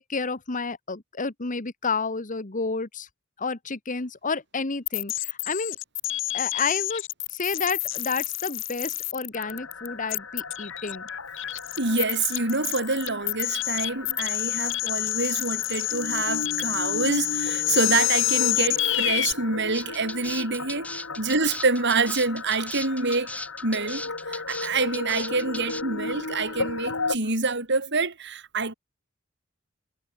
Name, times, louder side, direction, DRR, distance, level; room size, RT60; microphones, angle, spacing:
voice 1, 0.0-3.1 3.4-5.8 6.3-7.0 7.3-11.0 21.1-21.2, left 4 dB, 40° left, 1.5 m, -30 dB
sound 1, 4.9-19.3, left 15 dB, 65° left, 2.6 m, -28 dB
sound 2, 9.3-27.2, left 3 dB, 85° left, 3.5 m, -36 dB
voice 2, 11.8-20.9 21.2-23.3 23.6-28.7, right 3 dB, 60° right, 6.2 m, -27 dB
sound 3, 19.7-25.8, left 2 dB, 5° left, 3.2 m, -37 dB
head